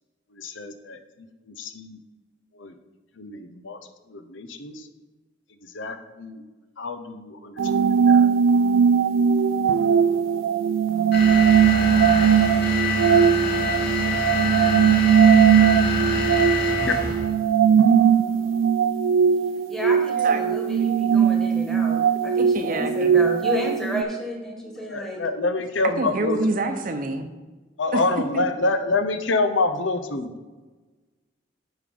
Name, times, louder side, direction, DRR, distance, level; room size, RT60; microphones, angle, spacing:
voice 1, 0.3-2.0 2.5-2.7 3.2-3.8 4.1-4.9 5.6-6.4 6.8-8.3 16.9-17.0 24.9-26.4 27.8-30.4, left 3 dB, 80° left, 8 dB, 0.8 m, -27 dB
sound 1, 7.6-24.0, right 7 dB, 90° right, 0.4 m, -19 dB
sound 2, 11.1-17.3, left 4 dB, 55° left, 2.2 m, -26 dB
voice 2, 19.7-25.2, left 1 dB, 5° left, -1 dB, 1.6 m, -31 dB
voice 3, 22.4-23.1 26.0-27.3 27.9-28.0 28.3-28.4, right 2 dB, 45° right, 7 dB, 0.7 m, -26 dB
9.2 x 5.1 x 5.1 m, 1.2 s
head